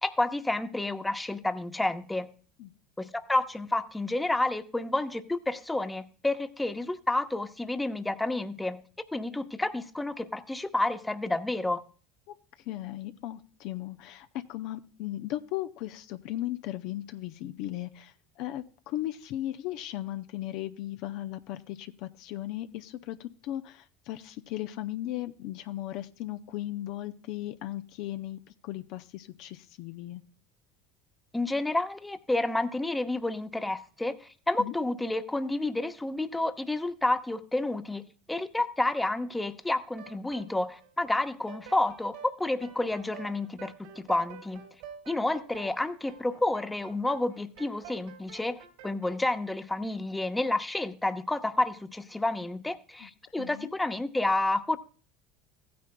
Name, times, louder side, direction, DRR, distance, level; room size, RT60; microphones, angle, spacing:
voice 1, 0.0-2.3 3.0-8.8 9.1-11.8 31.3-44.6 45.1-54.8, left 2 dB, 10° left, 9 dB, 0.9 m, -30 dB
voice 2, 12.7-30.2 34.6-34.7 53.0-53.1 53.4-53.7, left 14 dB, 65° left, 10 dB, 0.5 m, -37 dB
sound 1, 40.0-41.2 41.5-49.3, right 7 dB, 70° right, 2.5 m, -48 dB
16.0 x 9.4 x 2.2 m, 0.40 s
hypercardioid pair, 75°, 0 cm